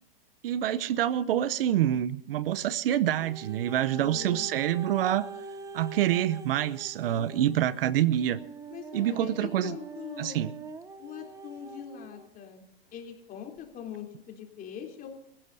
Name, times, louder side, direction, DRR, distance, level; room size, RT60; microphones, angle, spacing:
voice 1, 0.4-5.3 5.7-8.4 8.9-9.8 10.2-10.5, right 11 dB, 65° right, 0.8 m, -26 dB
sound 1, 3.2-12.3 13.0-13.1, right 4 dB, 10° right, 0.8 m, -44 dB
voice 2, 3.9-4.5 7.1-7.7 8.7-10.4 11.0-12.6 12.9-15.1, left 8 dB, 30° left, 3.5 m, -42 dB
28.0 x 15.5 x 2.7 m
hypercardioid pair, 125°, 30 cm